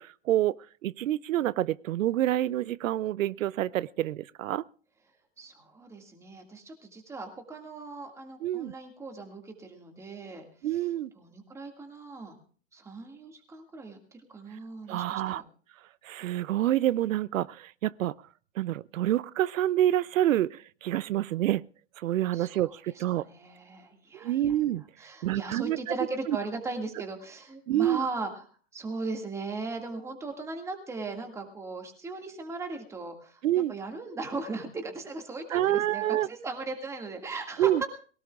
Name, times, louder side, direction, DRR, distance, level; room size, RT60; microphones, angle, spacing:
voice 1, 0.0-4.6 8.4-8.7 10.6-11.1 14.9-15.4 16.0-18.1 18.6-21.6 22.0-23.3 24.2-24.8 25.2-25.8 26.3-26.4 27.7-28.0 33.4-33.7 35.5-36.3 37.6-37.8, right 13 dB, 85° right, 0.6 m, -27 dB
voice 2, 5.4-10.9 11.2-12.4 12.7-15.4 22.3-24.6 25.0-28.4 28.7-33.4 33.7-37.9, right 3 dB, 5° right, 2.0 m, -38 dB
22.5 x 17.5 x 2.4 m
hypercardioid pair, 160°, 38 cm